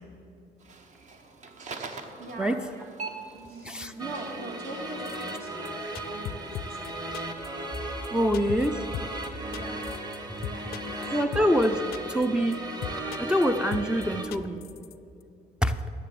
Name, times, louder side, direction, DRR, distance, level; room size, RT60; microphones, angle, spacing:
sound 1, 0.6-11.1, right 4 dB, 45° right, 1.0 m, -46 dB
voice 1, 2.2-7.3 8.1-8.3 8.6-9.9 10.4-11.2, right 2 dB, 65° right, 2.3 m, -43 dB
sound 2, 4.0-14.3, right 1 dB, 25° right, 1.2 m, -36 dB
sound 3, 5.1-5.4 5.7-5.8 6.0-6.9 7.1-7.5 7.7-7.8 8.0-8.1 8.3-8.7 8.9-9.3 9.5-10.2 10.4-11.1 11.3-11.7 11.9-12.3 12.5-12.6 12.8-13.5 13.7-14.1 14.3-14.9 15.2-15.3, left 11 dB, 65° left, 0.4 m, -37 dB
voice 2, 8.1-8.7 11.1-12.6 13.2-14.6 15.6-15.7, equal, 5° right, 0.4 m, -25 dB
10.0 x 7.0 x 7.6 m
cardioid pair, 110°, 17 cm